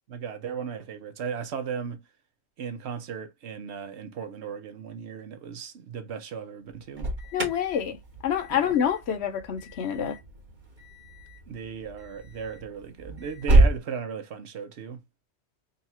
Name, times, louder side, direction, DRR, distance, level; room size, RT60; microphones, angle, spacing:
voice 1, 0.1-2.0 2.6-7.1 8.5-8.8 11.5-15.0, right 6 dB, 70° right, 1.1 m, -36 dB
Alarm, 6.7-13.8, right 2 dB, 45° right, 1.4 m, -28 dB
voice 2, 7.3-8.0 8.2-10.2, left 8 dB, 70° left, 1.0 m, -27 dB
4.1 x 2.4 x 4.2 m
omnidirectional pair, 1.2 m